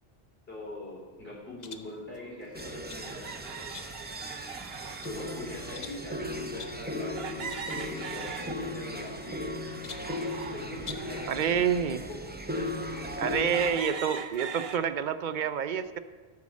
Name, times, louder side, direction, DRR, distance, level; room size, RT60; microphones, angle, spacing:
voice 1, 0.5-3.3 5.0-9.4 10.5-11.6 12.1-12.2, left 2 dB, 70° left, -3 dB, 3.4 m, -42 dB
sound 1, 1.6-1.9 2.6-3.1 3.7-4.2 4.7-5.2 5.7-6.1 6.6-6.9 7.5-7.7 7.9-8.0 8.9-9.5 9.8-10.2 10.8-11.2, left 6 dB, 50° left, 0.7 m, -46 dB
sound 2, 1.9-2.0 3.0-5.8 7.2-8.9 9.4-11.3 11.9-12.0 12.7-12.8 13.2-14.8, right 6 dB, 75° right, 1.0 m, -41 dB
sound 3, 2.5-13.8, left 1 dB, 10° right, 0.6 m, -37 dB
voice 2, 11.3-12.1 13.2-16.0, right 7 dB, 60° right, 12 dB, 0.6 m, -28 dB
12.5 x 4.8 x 7.2 m, 1.4 s
omnidirectional pair, 1.0 m